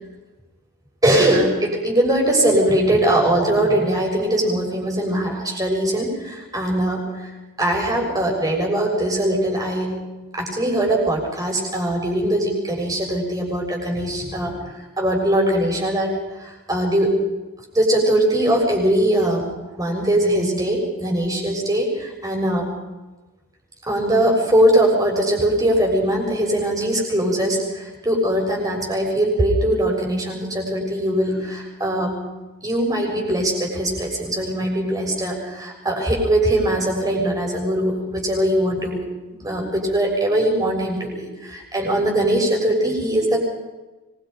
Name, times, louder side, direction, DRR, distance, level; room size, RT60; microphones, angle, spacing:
voice 1, 1.0-7.3 7.6-10.0 10.3-16.1 16.4-17.2 17.7-22.7 23.9-32.2 32.6-39.0 39.4-43.4, right 1 dB, 15° right, -1 dB, 6.9 m, -21 dB
25.5 x 23.0 x 5.4 m, 1.1 s
head